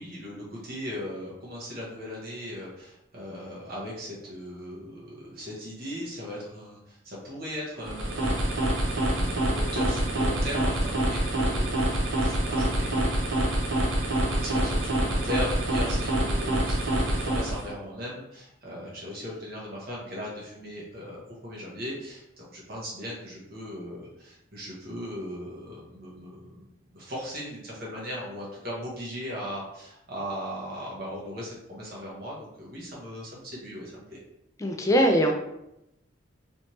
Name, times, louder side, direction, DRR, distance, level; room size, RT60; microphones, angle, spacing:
voice 1, 0.0-8.4 8.9-34.2, equal, 50° right, -5 dB, 1.0 m, -38 dB
sound 1, 7.8-17.7, right 1 dB, 75° right, 0.8 m, -26 dB
voice 2, 34.6-35.3, equal, 15° left, 3 dB, 0.4 m, -21 dB
3.3 x 3.0 x 2.8 m, 0.85 s
head